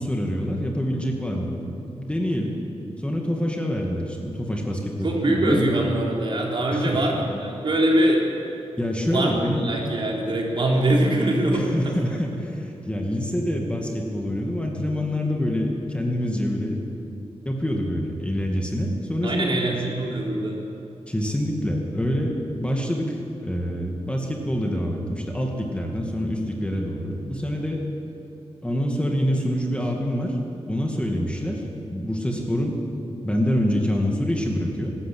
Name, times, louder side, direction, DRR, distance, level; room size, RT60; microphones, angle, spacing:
voice 1, 0.0-2.5 3.0-5.7 6.7-7.0 8.8-9.7 11.5-16.8 17.5-19.9 21.1-27.8 28.6-30.4 30.7-32.8 33.2-35.0, equal, 10° left, 0 dB, 2.3 m, -26 dB
voice 2, 5.0-8.2 9.1-11.9 19.2-20.7, right 1 dB, 50° right, -2 dB, 4.0 m, -23 dB
24.0 x 13.0 x 8.5 m, 3.0 s
wide cardioid pair, 140°, 11 cm